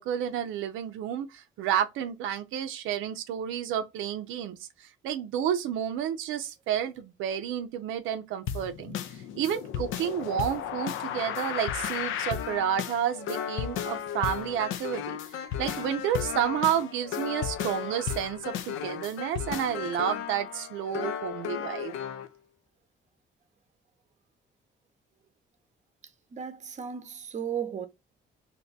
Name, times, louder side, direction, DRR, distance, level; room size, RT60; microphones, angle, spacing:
voice 1, 0.0-8.9 9.3-22.0, right 9 dB, 90° right, 0.5 m, -30 dB
sound 1, 8.5-22.3, left 9 dB, 85° left, 0.5 m, -34 dB
voice 2, 26.3-27.9, right 8 dB, 35° right, 0.6 m, -35 dB
2.7 x 2.2 x 3.9 m
cardioid pair, 90°, 20 cm